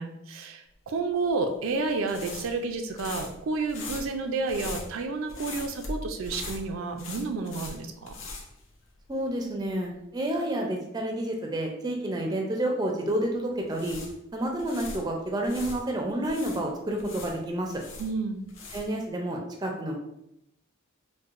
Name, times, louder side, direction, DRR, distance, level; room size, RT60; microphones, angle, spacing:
voice 1, 0.0-8.1 18.0-18.4, right 3 dB, 80° right, 5 dB, 0.4 m, -30 dB
sound 1, 1.2-9.3 9.6-9.7 13.5-15.8 16.2-19.1, left 2 dB, 75° left, 0.6 m, -41 dB
voice 2, 9.1-14.0 14.3-17.8 18.7-20.0, right 1 dB, 20° right, 1 dB, 0.4 m, -29 dB
4.5 x 2.1 x 2.4 m, 0.82 s
head